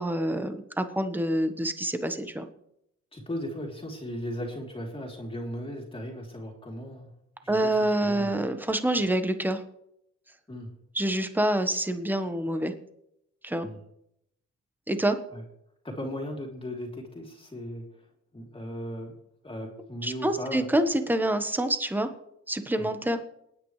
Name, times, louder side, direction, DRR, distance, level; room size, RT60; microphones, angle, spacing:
voice 1, 0.0-2.5 7.5-9.6 10.9-12.7 13.4-13.7 14.9-15.2 20.0-22.1 22.5-23.2, right 1 dB, 5° right, 8 dB, 1.3 m, -27 dB
voice 2, 3.1-7.1 7.4-8.5 10.5-10.7 13.6-13.8 15.3-15.4 15.8-17.8 18.3-19.1 19.4-20.7 22.7-22.9, equal, 20° left, -1 dB, 3.3 m, -37 dB
28.0 x 9.5 x 3.3 m, 0.78 s
cardioid pair, 90°, 30 cm